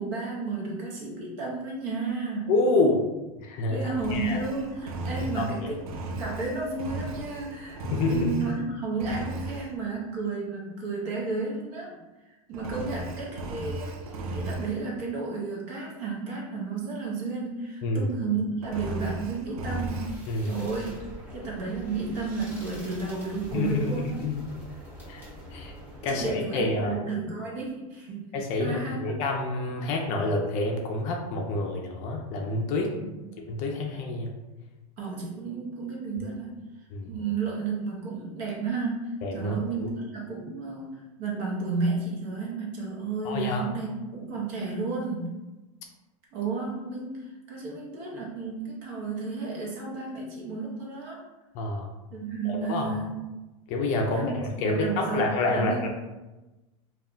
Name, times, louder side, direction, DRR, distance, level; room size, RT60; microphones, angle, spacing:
voice 1, 0.0-2.6 3.7-5.8 6.1-12.0 12.5-20.9 21.3-24.2 26.1-29.1 33.0-33.2 35.0-36.6 37.1-45.3 46.3-47.2 47.5-51.2 52.1-53.3 54.1-54.3 54.6-55.9, right 4 dB, 50° right, -3 dB, 0.8 m, -32 dB
voice 2, 2.5-3.1 3.4-3.8 4.1-4.4 5.4-5.7 7.8-8.3 17.8-18.1 20.3-20.5 23.5-24.4 25.1-25.7 26.0-27.0 28.3-32.9 33.4-34.3 36.9-37.1 39.2-39.9 43.2-43.6 51.5-51.9 52.5-52.9 53.7-55.9, left 2 dB, 40° left, 1 dB, 0.4 m, -28 dB
Engine, 3.9-8.6 9.0-9.7 12.5-14.8 18.6-20.2, right 2 dB, 90° right, 0.5 m, -36 dB
sound 1, 19.6-26.3, equal, 10° right, 0.9 m, -44 dB
2.3 x 2.1 x 3.6 m, 1.1 s
supercardioid pair, 140°, 18 cm